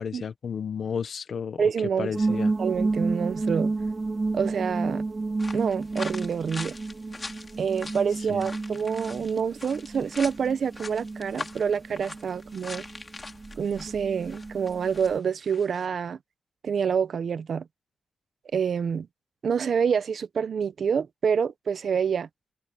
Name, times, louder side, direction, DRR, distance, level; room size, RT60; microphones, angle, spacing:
voice 1, 0.0-1.6 2.0-2.5 8.2-8.4, left 6 dB, 80° left, 1.1 m, -32 dB
voice 2, 1.6-3.7 4.3-5.0 5.5-6.7 7.6-12.8 13.6-16.2 16.6-17.7 18.5-19.1 19.4-22.3, right 6 dB, 85° right, 0.9 m, -27 dB
sound 1, 2.1-15.2, right 3 dB, 40° right, 2.6 m, -31 dB
sound 2, 5.4-15.2 15.4-15.8, left 3 dB, 40° left, 3.8 m, -42 dB
cardioid pair, 70°, 0 cm